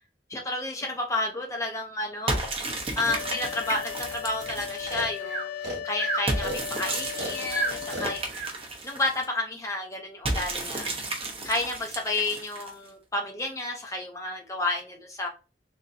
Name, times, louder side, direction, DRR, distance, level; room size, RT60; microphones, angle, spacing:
voice 1, 0.3-2.3 3.0-8.3 8.8-10.9 11.4-15.3, left 2 dB, 20° left, 0.7 m, -31 dB
sound 1, 2.3-5.2 6.3-9.3 10.2-12.9, right 2 dB, 35° right, 1.0 m, -33 dB
sound 2, 3.1-8.2, left 11 dB, 80° left, 0.5 m, -37 dB
Breathing, 4.9-8.6, right 2 dB, 70° right, 1.2 m, -32 dB
4.0 x 2.9 x 2.6 m
head